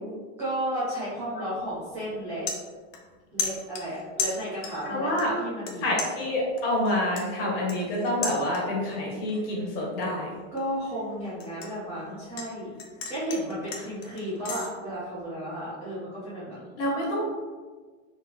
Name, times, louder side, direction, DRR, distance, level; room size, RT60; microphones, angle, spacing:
voice 1, 0.4-2.5 3.3-5.9 10.5-12.7 13.1-16.7, equal, 5° right, -13 dB, 0.3 m, -33 dB
sound 1, 1.5-1.8 2.1-3.1 3.4-4.9 5.2-5.7 6.0-8.9 9.3-9.6 10.0-12.5 12.8-14.7, left 4 dB, 70° left, 0.9 m, -35 dB
voice 2, 4.8-5.3 5.8-10.3 16.8-17.3, left 1 dB, 45° left, -3 dB, 1.4 m, -27 dB
4.3 x 3.4 x 2.8 m, 1.4 s
supercardioid pair, 165°, 39 cm